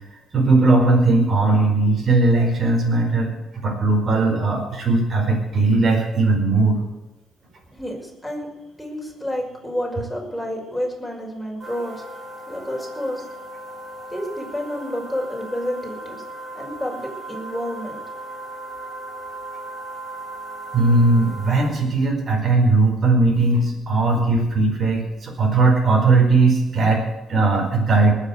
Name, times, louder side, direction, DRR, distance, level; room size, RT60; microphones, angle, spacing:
voice 1, 0.3-6.8 20.7-28.1, right 3 dB, 45° right, 0 dB, 4.9 m, -18 dB
voice 2, 7.7-8.5 8.8-12.0 12.5-13.2 14.1-16.2 16.5-18.0, equal, ahead, -2 dB, 5.7 m, -29 dB
sound 1, 11.6-21.7, right 2 dB, 25° right, 6.6 m, -37 dB
20.0 x 7.5 x 8.1 m, 1.1 s
cardioid pair, 90°, 0 cm